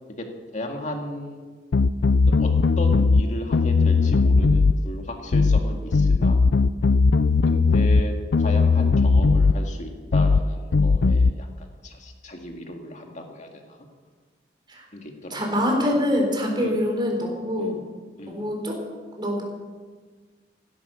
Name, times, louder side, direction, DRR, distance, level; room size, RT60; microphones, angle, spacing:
voice 1, 0.5-1.5 2.3-2.5 2.8-6.4 7.5-13.9 14.9-15.6 16.6-16.8 17.6-17.8 18.2-18.5, left 1 dB, 45° left, 3 dB, 2.2 m, -35 dB
sound 1, 1.7-3.2 3.5-4.8 5.3-5.6 5.9-8.0 8.3-9.6 10.1-10.4 10.7-11.3, left 4 dB, 75° left, 0.5 m, -18 dB
voice 2, 15.3-17.8 18.3-18.8 19.2-19.4, left 1 dB, 25° right, 0 dB, 4.0 m, -24 dB
16.0 x 11.5 x 7.0 m, 1.5 s
head